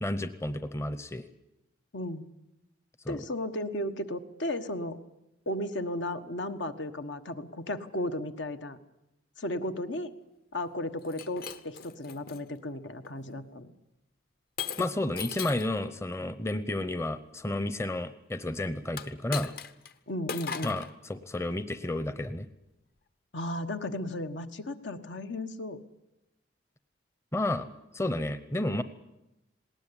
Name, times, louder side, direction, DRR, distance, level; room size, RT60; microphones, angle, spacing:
voice 1, 0.0-1.2 3.0-3.2 14.8-19.5 20.6-22.5 27.3-27.7 27.9-28.8, left 1 dB, 15° left, 12 dB, 0.7 m, -31 dB
voice 2, 1.9-2.3 3.1-5.0 5.5-8.8 9.4-10.1 10.5-13.7 20.1-20.8 23.3-25.8, left 1 dB, 75° left, 8 dB, 1.4 m, -34 dB
Shatter, 11.0-12.4 13.0-13.4 14.6-15.7 18.9-19.9 20.3-20.9, left 6 dB, 50° left, 1.1 m, -38 dB
19.5 x 18.5 x 9.9 m, 0.92 s
head